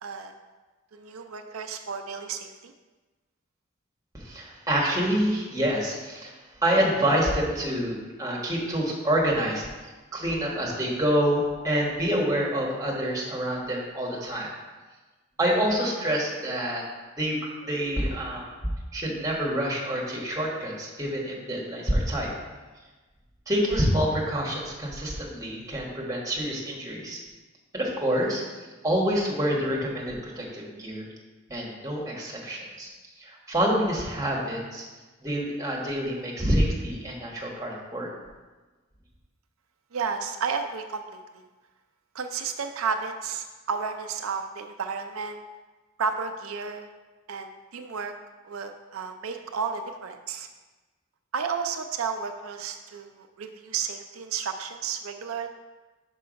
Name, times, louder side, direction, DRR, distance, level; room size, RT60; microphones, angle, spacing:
voice 1, 0.0-0.3 0.9-2.7 39.9-41.4 42.1-45.4 46.0-46.9 47.3-48.1 48.4-50.5 51.3-55.5, right 5 dB, 90° right, 6 dB, 0.5 m, -32 dB
voice 2, 4.1-6.3 6.6-9.6 10.1-14.5 15.4-16.8 17.2-17.4 17.6-18.5 18.9-22.3 23.5-27.2 27.7-28.4 28.8-31.0 31.5-32.9 33.2-34.8 35.2-38.1, equal, 15° right, -3 dB, 1.4 m, -27 dB
5.6 x 5.3 x 5.2 m, 1.3 s
head